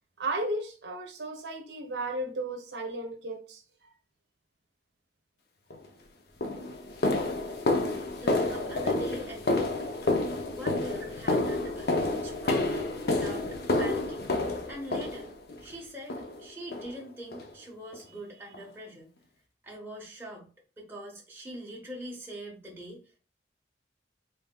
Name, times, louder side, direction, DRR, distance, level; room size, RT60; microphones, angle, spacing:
voice 1, 0.2-3.9 8.3-8.5, right 2 dB, 70° right, 0.8 m, -35 dB
sound 1, 5.7-5.9 6.4-15.6 16.1-16.4 16.7-16.9 17.3-17.5 17.9-18.0 18.5-18.6, left 2 dB, 60° left, 0.7 m, -29 dB
voice 2, 8.1-9.8 10.5-13.5 13.8-14.3 14.7-15.3 15.6-19.1 19.6-20.5 20.8-23.0, equal, 10° right, 1.2 m, -43 dB
4.0 x 3.6 x 2.3 m
head